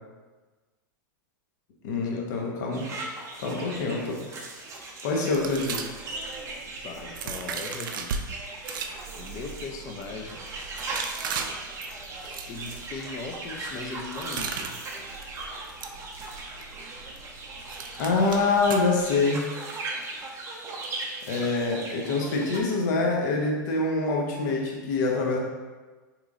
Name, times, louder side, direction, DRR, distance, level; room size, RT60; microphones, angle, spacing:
voice 1, 1.8-2.9 3.4-4.0 5.0-5.8 8.6-8.8 18.0-19.5 21.3-25.4, left 3 dB, 60° left, -1 dB, 0.8 m, -25 dB
sound 1, 2.7-22.6, right 2 dB, 25° right, 0.6 m, -38 dB
voice 2, 3.4-4.2 6.8-8.1 9.2-10.5 12.5-14.8, left 4 dB, 30° left, 4 dB, 0.4 m, -39 dB
sound 2, 5.3-8.2 8.6-19.2, right 6 dB, 75° right, 0.4 m, -38 dB
3.8 x 3.0 x 2.4 m, 1.3 s
hypercardioid pair, 120°, 11 cm